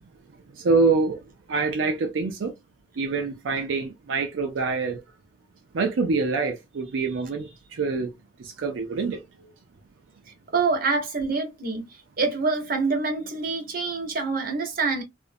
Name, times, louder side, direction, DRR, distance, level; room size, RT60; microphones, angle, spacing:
voice 1, 0.6-1.2 1.5-2.5 3.0-5.0 5.7-8.1 8.4-9.2, right 4 dB, 75° right, 0.4 m, -25 dB
voice 2, 10.5-11.9 12.2-15.0, right 4 dB, 50° right, 0.8 m, -26 dB
2.5 x 2.1 x 2.5 m
head